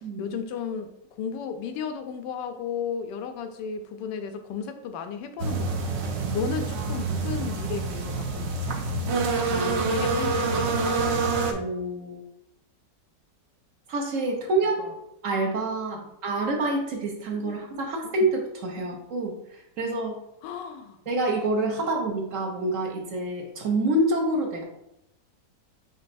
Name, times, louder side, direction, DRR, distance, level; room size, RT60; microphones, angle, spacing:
voice 1, 0.2-6.0 6.3-8.8 9.5-10.8 14.8-14.9 15.9-16.1 17.4-17.6 18.8-18.9 20.4-21.0 21.8-21.9, left 7 dB, 80° left, 7 dB, 1.2 m, -34 dB
sound 1, 5.4-11.5, right 3 dB, 75° right, 0.6 m, -27 dB
voice 2, 11.5-12.2 13.9-14.8 15.2-19.3 19.8-20.2 21.1-24.6, right 2 dB, 55° right, 1 dB, 1.0 m, -27 dB
5.3 x 3.9 x 2.6 m, 0.84 s
omnidirectional pair, 1.9 m